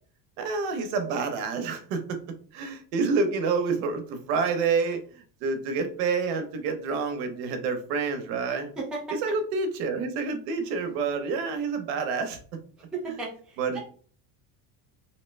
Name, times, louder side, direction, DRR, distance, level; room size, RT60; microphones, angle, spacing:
voice 1, 0.4-2.2 2.5-5.0 5.4-8.7 9.2-12.4 13.6-13.8, right 4 dB, 90° right, 7 dB, 0.8 m, -28 dB
voice 2, 8.8-9.2 12.9-13.8, right 3 dB, ahead, -4 dB, 0.4 m, -35 dB
2.8 x 2.1 x 3.2 m, 0.43 s
cardioid pair, 160°, 47 cm